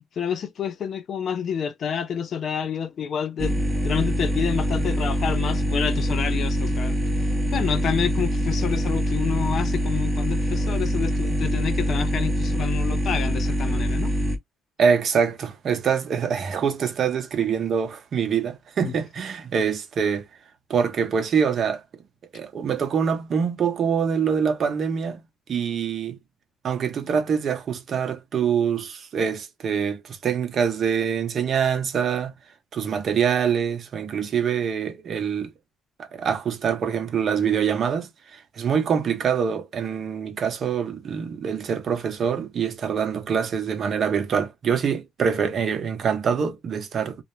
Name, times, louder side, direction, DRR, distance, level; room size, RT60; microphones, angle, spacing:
voice 1, 0.2-3.6 3.8-7.0 7.5-14.1 18.8-18.9, left 7 dB, 50° left, 0.4 m, -28 dB
sound 1, 3.4-14.4, equal, 10° right, 0.7 m, -24 dB
voice 2, 14.8-20.3 20.7-21.8 22.3-25.2 25.5-26.2 26.6-32.3 32.7-35.5 36.0-47.2, right 7 dB, 45° right, 0.7 m, -25 dB
2.4 x 2.0 x 2.9 m
cardioid pair, 135°, 0 cm